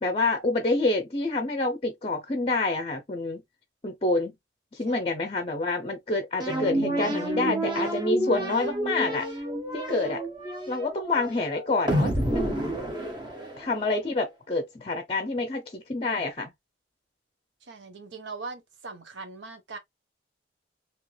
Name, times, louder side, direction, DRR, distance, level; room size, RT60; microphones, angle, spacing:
voice 1, 0.0-3.4 3.8-4.3 4.7-9.3 9.7-10.2 10.7-12.6 13.6-16.5, left 2 dB, 30° left, 0.5 m, -27 dB
sound 1, 6.4-13.9, right 1 dB, 25° right, 0.8 m, -29 dB
voice 2, 17.7-19.8, right 3 dB, 80° right, 0.8 m, -40 dB
3.2 x 2.9 x 2.3 m
head